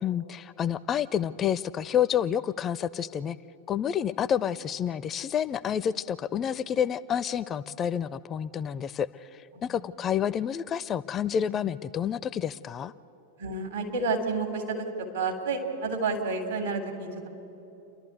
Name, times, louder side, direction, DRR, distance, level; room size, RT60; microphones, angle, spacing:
voice 1, 0.0-3.4 3.7-12.9, left 9 dB, 25° left, 18 dB, 0.4 m, -29 dB
voice 2, 13.4-14.8 15.1-17.3, right 4 dB, 70° right, 3 dB, 3.0 m, -30 dB
30.0 x 12.0 x 8.2 m, 3.0 s
figure-of-eight pair, 90°, 0 cm